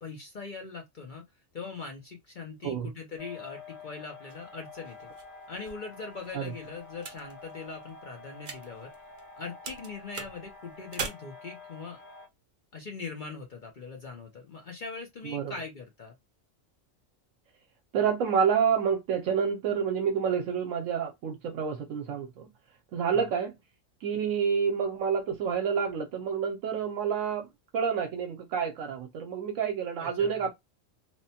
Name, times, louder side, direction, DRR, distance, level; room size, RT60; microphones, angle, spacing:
voice 1, 0.0-1.2 1.5-5.1 5.5-8.9 9.4-12.0 12.7-16.1 23.1-23.2 30.0-30.5, left 4 dB, 50° left, 0.6 m, -41 dB
sound 1, 3.2-12.3, left 4 dB, 85° left, 1.2 m, -48 dB
sound 2, 4.3-9.4 9.6-11.1, right 5 dB, 50° right, 0.7 m, -42 dB
voice 2, 17.9-22.5 22.9-23.6 24.0-27.5 27.7-30.5, right 7 dB, 80° right, 1.0 m, -28 dB
3.0 x 2.1 x 2.7 m
omnidirectional pair, 1.3 m